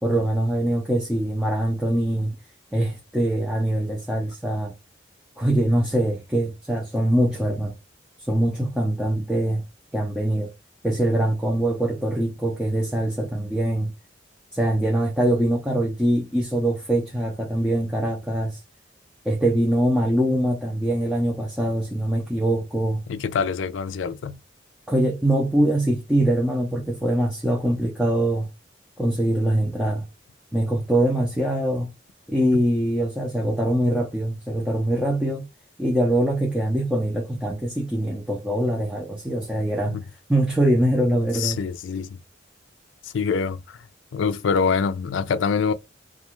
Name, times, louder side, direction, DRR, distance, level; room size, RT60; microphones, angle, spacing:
voice 1, 0.0-2.4 2.7-4.7 5.4-7.7 8.3-9.7 9.9-10.5 10.8-13.9 14.5-18.6 19.3-23.0 24.9-28.5 29.0-30.0 30.5-31.9 32.3-35.5 35.8-40.0 40.3-41.6, right 1 dB, 5° right, 0.5 m, -23 dB
voice 2, 23.1-24.4 32.5-32.6 39.9-40.0 41.3-42.2 43.0-43.8 44.1-45.7, left 5 dB, 85° left, 0.4 m, -25 dB
2.4 x 2.3 x 2.9 m
head